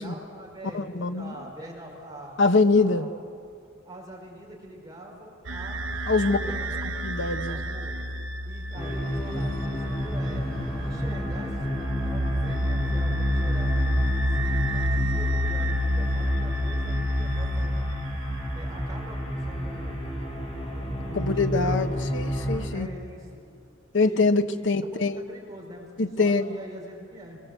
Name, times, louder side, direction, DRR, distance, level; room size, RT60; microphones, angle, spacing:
voice 1, 0.0-2.4 2.8-3.1 3.8-5.8 6.2-6.8 7.5-8.0 8.4-10.5 10.8-13.7 14.3-17.8 18.5-20.2 21.1-22.1 22.7-23.4 24.0-24.3 24.6-25.9 26.2-27.4, equal, 20° right, -2 dB, 5.2 m, -43 dB
voice 2, 0.7-1.3 2.4-3.1 6.1-6.4 7.0-7.6 21.1-22.9 23.9-25.2 26.0-26.5, left 3 dB, 65° left, 8 dB, 1.0 m, -23 dB
sound 1, 5.4-18.6, equal, 75° right, 0.8 m, -29 dB
sound 2, 8.7-22.6, equal, 30° left, 4.3 m, -31 dB
24.0 x 22.0 x 8.0 m, 2.2 s
head